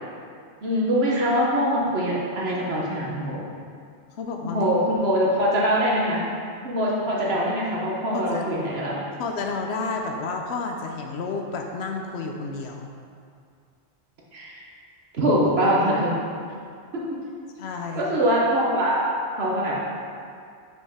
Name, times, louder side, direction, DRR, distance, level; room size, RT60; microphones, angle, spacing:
voice 1, 0.6-3.4 4.4-6.2 6.6-9.0 14.3-14.6 15.1-16.1 16.9-17.0 17.9-19.0 19.4-19.8, equal, 70° right, -4 dB, 1.2 m, -23 dB
voice 2, 4.2-4.6 8.1-8.5 9.2-12.9 17.6-18.1, left 4 dB, 75° left, 2 dB, 0.9 m, -30 dB
5.3 x 4.5 x 4.9 m, 2.3 s
omnidirectional pair, 1.1 m